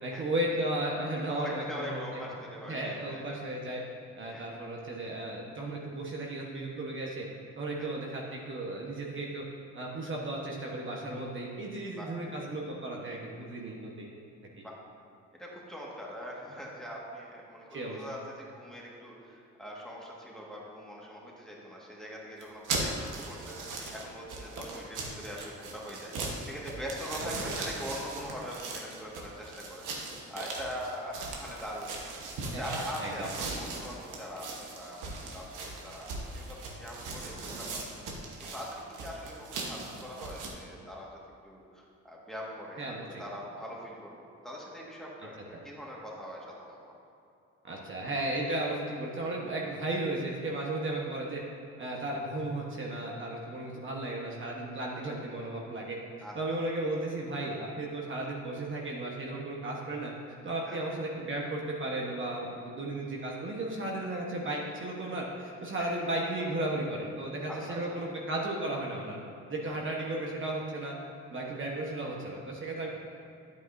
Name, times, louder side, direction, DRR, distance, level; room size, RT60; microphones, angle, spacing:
voice 1, 0.0-2.0 2.7-3.8 4.2-7.2 7.6-9.4 9.7-14.1 17.7-18.0 27.2-27.5 32.5-33.3 42.8-43.2 47.6-51.4 51.8-56.0 56.3-60.1 60.4-69.2 69.5-70.9 71.3-72.9, right 1 dB, 40° right, -2 dB, 1.2 m, -35 dB
voice 2, 1.3-3.4 4.3-4.4 7.8-7.9 11.9-12.1 14.6-14.8 15.3-32.2 32.4-37.8 38.5-41.1 41.4-46.8 56.2-56.6 60.6-60.8 65.8-65.9 67.5-68.0 69.7-69.8, equal, ahead, -4 dB, 1.7 m, -42 dB
sound 1, 22.4-40.5, right 3 dB, 90° right, 1.2 m, -39 dB
9.3 x 8.4 x 2.6 m, 2.7 s
cardioid pair, 90°, 30 cm